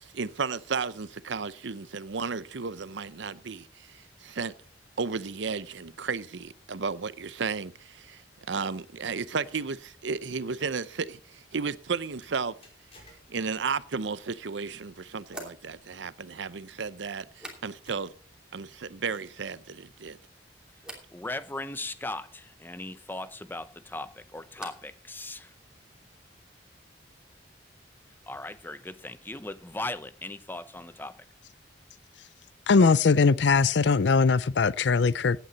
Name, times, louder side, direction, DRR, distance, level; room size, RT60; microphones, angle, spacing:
voice 1, 0.0-4.5 5.0-8.2 8.5-12.5 13.3-18.1 18.5-20.2, right 5 dB, 80° right, 0.7 m, -33 dB
sound 1, 10.5-10.8 12.2-13.8 15.1-15.3 16.5-16.7 17.3-17.4 17.8-18.4 19.1-19.4, left 2 dB, 30° left, 5.0 m, -58 dB
sound 2, 15.3-18.1 18.4-19.0 19.3-19.9 20.8-21.1 23.6-25.0 25.3-25.9, right 1 dB, 5° right, 2.8 m, -49 dB
voice 2, 21.1-25.5 28.3-31.2, left 2 dB, 10° left, 0.7 m, -38 dB
voice 3, 32.7-35.4, left 4 dB, 70° left, 0.5 m, -21 dB
16.5 x 9.4 x 4.1 m
head